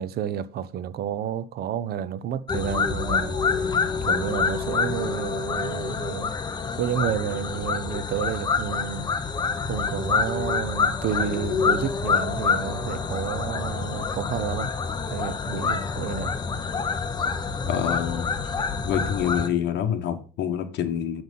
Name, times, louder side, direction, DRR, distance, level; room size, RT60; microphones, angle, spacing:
voice 1, 0.0-6.3 6.8-9.1 9.7-14.7 15.1-16.4 16.6-16.8, right 9 dB, 50° right, 0.7 m, -30 dB
sound 1, 2.5-19.5, left 5 dB, 20° left, 0.8 m, -27 dB
voice 2, 17.7-18.3 18.8-21.2, left 9 dB, 60° left, 1.3 m, -26 dB
7.9 x 5.9 x 5.4 m
cardioid pair, 155°, 21 cm